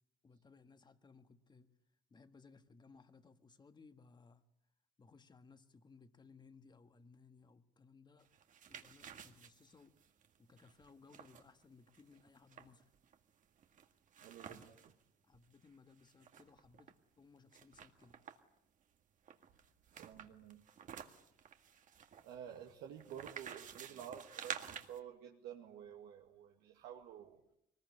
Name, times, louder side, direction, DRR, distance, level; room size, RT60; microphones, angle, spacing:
voice 1, 0.2-1.7 2.1-4.4 5.0-8.3 8.7-10.0 10.4-12.8 14.5-14.7 15.2-18.2 22.4-22.6 23.9-24.0, left 4 dB, 25° left, 9 dB, 1.7 m, -63 dB
sound 1, 8.2-14.9 15.3-15.4 15.7-16.9 17.5-18.6 19.3-25.0, right 8 dB, 50° right, 1.9 m, -51 dB
voice 2, 14.2-14.8 19.9-20.6 22.2-27.4, right 9 dB, 85° right, 0 dB, 2.3 m, -51 dB
23.5 x 20.5 x 9.9 m, 0.78 s
cardioid pair, 110°, 17 cm